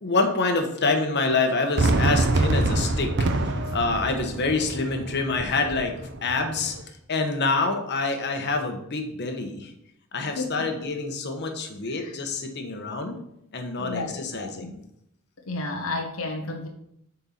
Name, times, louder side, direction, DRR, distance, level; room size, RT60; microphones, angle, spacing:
voice 1, 0.0-3.1 3.7-5.9 6.2-6.7 7.1-9.7 10.1-13.2 13.5-14.8, left 3 dB, 50° left, 4 dB, 1.1 m, -26 dB
Fireworks, 1.8-6.8, right 2 dB, 55° right, 0.8 m, -26 dB
voice 2, 10.4-10.7 11.9-12.1 13.8-14.7 15.5-16.7, left 2 dB, 70° left, 2 dB, 0.9 m, -32 dB
7.6 x 4.4 x 5.8 m, 0.77 s
head